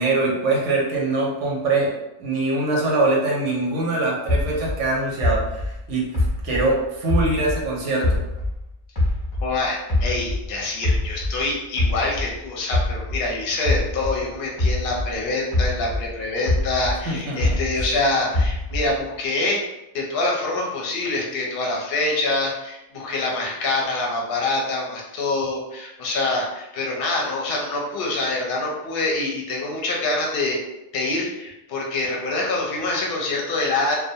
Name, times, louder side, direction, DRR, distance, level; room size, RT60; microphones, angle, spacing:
voice 1, 0.0-6.1 6.4-8.2 17.1-17.6, right 2 dB, 85° right, -2 dB, 0.9 m, -23 dB
sound 1, 4.3-7.7 8.0-10.5 10.8-15.2 15.5-18.0 18.3-19.0, left 2 dB, 25° left, 0.6 m, -24 dB
voice 2, 9.4-19.6 19.9-30.6 30.9-34.0, left 2 dB, 60° left, -2 dB, 0.7 m, -25 dB
2.4 x 2.0 x 2.6 m, 0.91 s
omnidirectional pair, 1.2 m